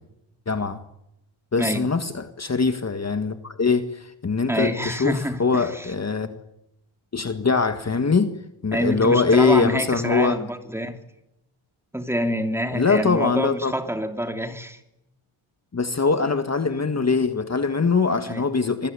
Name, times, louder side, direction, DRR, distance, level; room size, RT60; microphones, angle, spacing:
voice 1, 0.5-0.8 1.5-6.3 7.1-8.3 8.6-10.4 12.7-13.7 15.7-18.9, left 4 dB, 30° left, 1.8 m, -22 dB
voice 2, 1.6-1.9 4.5-5.9 8.7-11.0 11.9-14.8 18.3-18.4, equal, 5° right, 3.0 m, -27 dB
26.5 x 20.5 x 9.9 m
wide cardioid pair, 130°, 49 cm